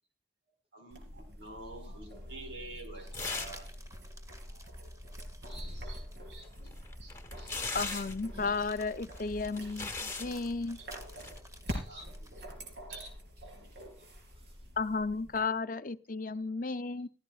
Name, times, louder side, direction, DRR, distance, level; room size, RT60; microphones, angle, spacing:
voice 1, 0.7-3.7 4.5-4.6 5.4-6.5 6.8-7.1 7.4-8.0 10.7-10.9 11.7-12.3 12.9-13.1 13.6-13.7, right 2 dB, 75° right, 4.8 m, -49 dB
sound 1, 0.9-15.4, equal, 60° right, 4.2 m, -45 dB
sound 2, 3.0-6.4 7.0-7.1 8.3-12.4 14.6-15.5, right 1 dB, 15° right, 1.9 m, -56 dB
sound 3, 3.1-3.7 3.9-4.0 6.4-8.2 9.2-10.3 11.1-11.4, left 4 dB, 15° left, 1.3 m, -39 dB
voice 2, 7.7-10.8 14.8-17.1, left 4 dB, 45° left, 0.6 m, -34 dB
voice 3, 11.8-12.2 12.5-12.7 13.1-14.7, left 1 dB, 30° right, 5.4 m, -72 dB
16.5 x 14.0 x 2.4 m
head